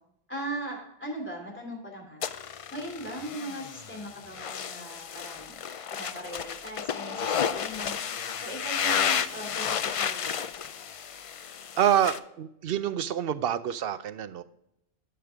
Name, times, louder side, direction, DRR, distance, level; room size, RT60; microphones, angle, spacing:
voice 1, 0.3-2.2 2.7-8.0 8.4-10.5, right 1 dB, 10° left, -1 dB, 2.6 m, -39 dB
sound 1, 2.2-12.2, left 7 dB, 55° left, 0.4 m, -32 dB
voice 2, 11.8-14.4, right 10 dB, 70° right, 13 dB, 0.8 m, -27 dB
11.0 x 6.6 x 3.4 m, 0.79 s
omnidirectional pair, 1.0 m